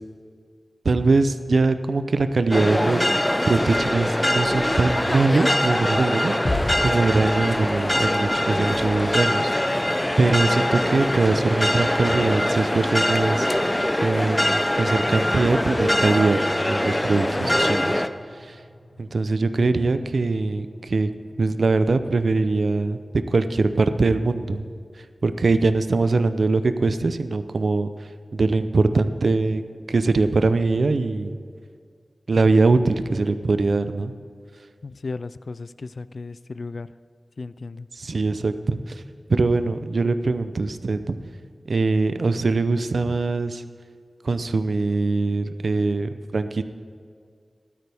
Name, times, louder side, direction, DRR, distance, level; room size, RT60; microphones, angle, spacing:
voice 1, 0.8-3.1 3.5-9.9 10.2-13.5 14.0-16.4 16.7-18.0 18.5-18.6 19.0-21.1 21.4-23.0 23.3-24.7 25.2-27.9 28.3-29.6 29.9-31.4 32.3-34.1 38.0-38.8 39.3-41.2 41.7-43.6 44.2-46.6, right 3 dB, 75° right, 10 dB, 0.6 m, -22 dB
sound 1, 2.5-18.1, left 1 dB, 15° left, 0.5 m, -23 dB
sound 2, 6.4-24.7, left 1 dB, 35° left, 2.0 m, -40 dB
voice 2, 17.3-17.6 19.4-19.8 34.8-36.9 37.4-37.9 43.1-43.2, left 3 dB, 70° left, 15 dB, 0.3 m, -35 dB
14.5 x 12.5 x 3.5 m, 2.1 s
wide cardioid pair, 80°, 0 cm